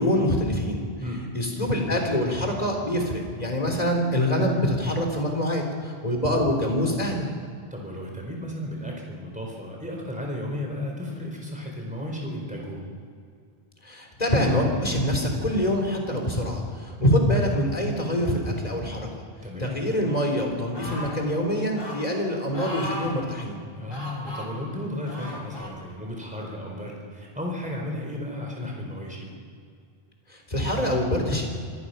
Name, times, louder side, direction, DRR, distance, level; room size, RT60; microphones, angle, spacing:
voice 1, 0.0-0.8 1.3-7.3 13.8-19.1 19.6-23.6 30.5-31.5, equal, 40° left, 2 dB, 3.9 m, -25 dB
voice 2, 7.7-12.9 19.4-19.9 23.7-29.3, left 1 dB, 5° right, -1 dB, 4.2 m, -34 dB
sound 1, 20.7-21.2 21.8-22.0 22.5-23.1 23.9-24.5 25.1-25.7 26.5-26.6, equal, 60° left, 4.2 m, -36 dB
25.0 x 18.5 x 5.7 m, 2.3 s
omnidirectional pair, 1.0 m